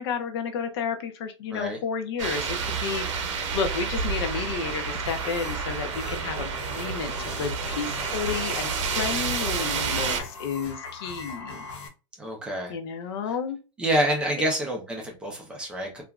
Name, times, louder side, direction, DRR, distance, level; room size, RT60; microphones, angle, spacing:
voice 1, 0.0-11.7 12.7-13.6, left 6 dB, 55° left, 7 dB, 0.4 m, -32 dB
sound 1, 2.2-10.2, right 5 dB, 80° right, 0.6 m, -30 dB
sound 2, 5.0-11.9, left 4 dB, 85° left, 0.9 m, -40 dB
voice 2, 12.2-12.8 13.8-16.0, right 1 dB, 5° right, 0 dB, 0.5 m, -27 dB
2.8 x 2.4 x 2.3 m, 0.31 s
supercardioid pair, 170°, 15 cm